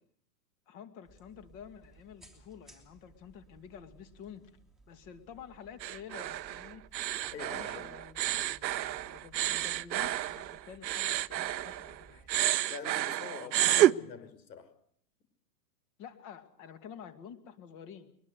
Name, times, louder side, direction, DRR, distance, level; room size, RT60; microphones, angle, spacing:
voice 1, 0.7-4.5 4.9-6.8 7.5-12.3 13.3-14.3 16.0-18.1, left 8 dB, 30° left, 2.4 m, -50 dB
sound 1, 1.0-12.5, right 3 dB, ahead, 3.1 m, -59 dB
sound 2, 5.8-12.0 12.3-13.9, right 13 dB, 90° right, 0.9 m, -30 dB
voice 2, 7.3-7.9 12.7-14.8, left 6 dB, 85° left, 5.3 m, -46 dB
22.5 x 21.5 x 8.2 m
hypercardioid pair, 165°, 50 cm